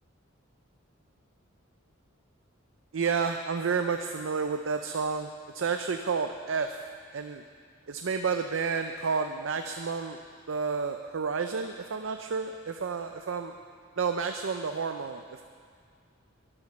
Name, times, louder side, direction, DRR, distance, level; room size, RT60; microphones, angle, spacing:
voice 1, 2.9-6.9 7.1-7.4 7.9-10.2 10.5-13.5 14.0-15.4, right 5 dB, 70° right, 6 dB, 0.5 m, -30 dB
12.0 x 9.9 x 6.5 m, 2.2 s
head